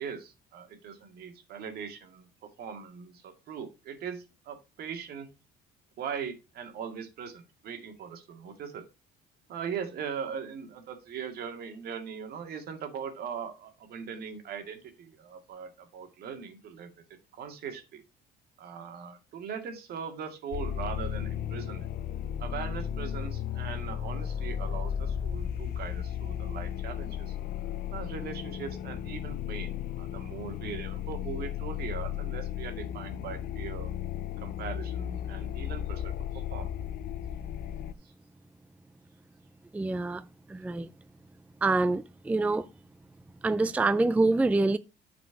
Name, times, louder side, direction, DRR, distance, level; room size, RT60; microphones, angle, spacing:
voice 1, 0.0-5.3 6.0-8.8 9.5-16.9 17.3-18.0 18.6-21.9 22.4-27.4 27.9-33.9 34.4-36.7 38.0-38.1, right 7 dB, 65° right, 2.1 m, -40 dB
sound 1, 20.5-37.9, left 9 dB, 60° left, 0.6 m, -35 dB
voice 2, 39.7-40.2 40.5-40.9 41.6-42.7 43.4-44.8, right 2 dB, 10° right, 0.4 m, -26 dB
9.8 x 5.0 x 4.6 m
cardioid pair, 110°, 17 cm